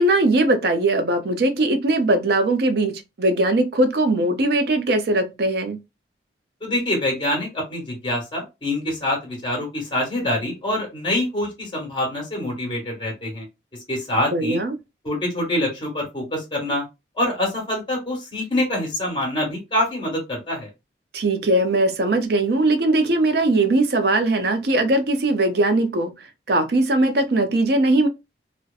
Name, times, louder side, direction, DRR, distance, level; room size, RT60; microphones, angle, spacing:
voice 1, 0.0-5.8 14.3-14.8 21.1-26.1 26.5-28.1, right 2 dB, 55° right, 0.5 m, -20 dB
voice 2, 6.6-13.5 13.9-14.6 15.0-16.8 17.2-20.7, left 1 dB, 25° left, 1.0 m, -25 dB
2.6 x 2.1 x 2.3 m
head